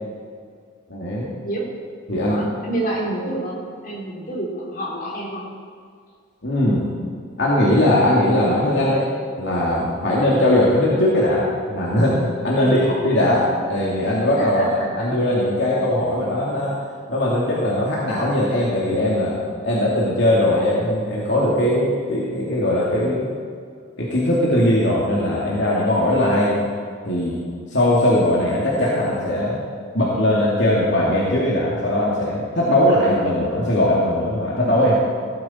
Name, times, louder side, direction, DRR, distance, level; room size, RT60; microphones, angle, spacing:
voice 1, 0.9-1.3 2.1-2.5 6.4-6.9 7.4-9.1 9.4-12.2 12.4-13.4 13.7-16.7 17.1-19.3 19.6-23.3 24.0-26.6 27.0-27.4 27.7-29.6 29.9-35.0, left 1 dB, 65° left, -6 dB, 2.4 m, -19 dB
voice 2, 2.2-5.5 12.5-12.9 14.4-15.1, right 1 dB, 45° left, -4 dB, 3.5 m, -29 dB
17.0 x 12.0 x 4.4 m, 2.1 s
head